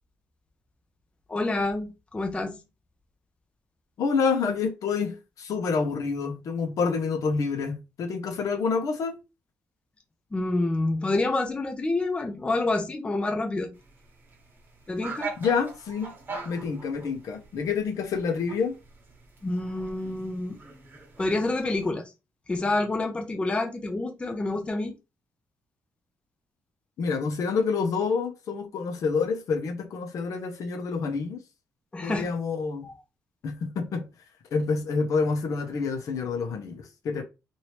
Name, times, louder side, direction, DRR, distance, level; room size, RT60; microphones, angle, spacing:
voice 1, 1.3-2.6 10.3-13.7 14.9-15.3 19.4-20.6 21.2-22.1 22.5-24.9 31.9-32.3 32.8-32.9, left 2 dB, 20° left, 0.6 m, -28 dB
voice 2, 4.0-9.2 15.4-16.1 16.5-18.8 27.0-31.4 32.0-32.9 33.4-34.0 34.5-37.2, left 5 dB, 70° left, 0.8 m, -28 dB
sound 1, 13.7-21.9, right 3 dB, 35° right, 1.1 m, -43 dB
3.0 x 2.6 x 3.1 m
cardioid pair, 95°, 6 cm